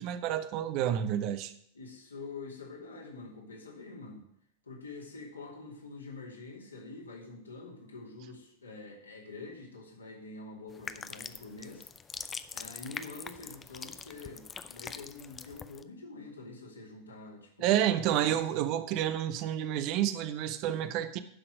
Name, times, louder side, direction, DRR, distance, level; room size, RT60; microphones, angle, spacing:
voice 1, 0.0-1.5 17.6-21.2, right 11 dB, 40° right, 11 dB, 0.8 m, -29 dB
voice 2, 1.7-4.3 4.7-11.9 12.5-18.4, left 3 dB, 75° left, -1 dB, 2.6 m, -46 dB
sound 1, 10.7-15.8, left 6 dB, 20° left, 0.5 m, -44 dB
11.5 x 6.0 x 6.3 m, 0.69 s
figure-of-eight pair, 90°, 0 cm